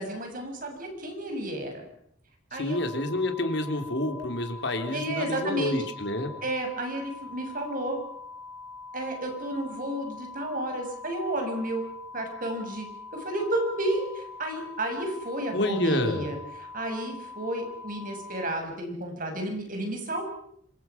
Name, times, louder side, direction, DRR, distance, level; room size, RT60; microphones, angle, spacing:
voice 1, 0.0-1.9 2.5-2.8 4.9-5.8 6.4-8.0 8.9-11.8 12.1-12.9 13.2-20.2, right 1 dB, 45° right, 4 dB, 6.7 m, -32 dB
voice 2, 2.6-6.3 15.5-16.3, left 1 dB, 60° left, 6 dB, 3.8 m, -28 dB
sound 1, 2.7-18.6, left 4 dB, 5° left, 6.7 m, -43 dB
27.0 x 25.0 x 6.1 m, 0.70 s
head